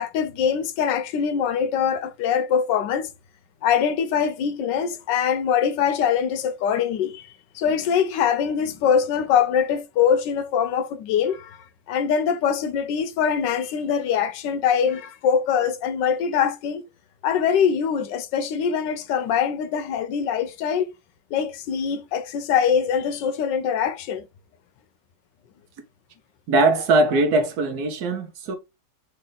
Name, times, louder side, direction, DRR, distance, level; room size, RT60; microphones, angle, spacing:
voice 1, 0.0-3.1 3.6-16.8 17.2-20.9 21.3-24.3, left 7 dB, 90° left, 1.3 m, -23 dB
voice 2, 26.5-28.6, right 2 dB, 70° right, 1.2 m, -20 dB
3.3 x 3.0 x 3.8 m
omnidirectional pair, 1.9 m